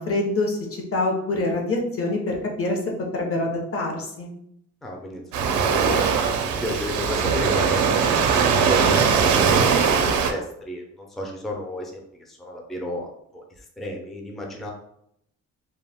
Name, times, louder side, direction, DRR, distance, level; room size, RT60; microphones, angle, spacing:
voice 1, 0.0-2.8 3.1-4.3, left 2 dB, 50° left, 1 dB, 0.8 m, -25 dB
voice 2, 4.8-6.1 6.5-14.7, left 1 dB, ahead, 0 dB, 0.5 m, -33 dB
Waves surf, 5.3-10.3, right 6 dB, 75° right, 0.5 m, -20 dB
2.3 x 2.1 x 3.4 m, 0.75 s
cardioid pair, 90°, 30 cm